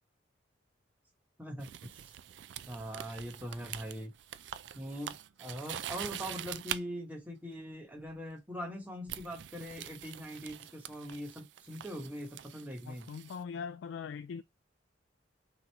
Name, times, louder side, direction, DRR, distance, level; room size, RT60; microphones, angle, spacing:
voice 1, 1.4-1.7 2.0-2.1 2.6-4.1 4.7-13.1, equal, 10° right, 1.1 m, -42 dB
sound 1, 1.6-6.8 8.1-8.3 9.1-13.4, right 10 dB, 65° right, 0.4 m, -44 dB
voice 2, 12.9-14.4, left 6 dB, 75° left, 0.3 m, -41 dB
3.9 x 3.0 x 4.4 m
head